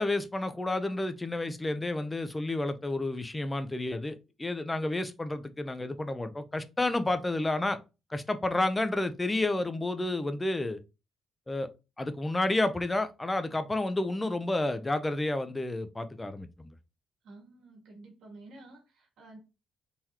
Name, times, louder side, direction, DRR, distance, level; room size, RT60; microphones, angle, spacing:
voice 1, 0.0-7.8 8.1-10.8 11.5-11.7 12.0-16.7, left 2 dB, 15° left, 0.5 m, -30 dB
voice 2, 17.2-19.4, right 2 dB, 80° right, 1.7 m, -51 dB
3.8 x 3.0 x 2.8 m
cardioid pair, 115°, 0 cm